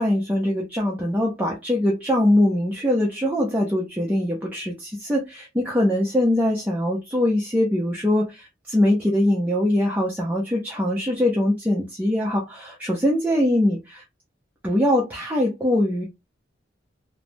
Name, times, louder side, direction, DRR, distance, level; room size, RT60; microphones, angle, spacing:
voice 1, 0.0-14.0 14.6-16.0, left 1 dB, 10° right, -3 dB, 0.5 m, -22 dB
3.1 x 2.0 x 2.6 m, 0.22 s
head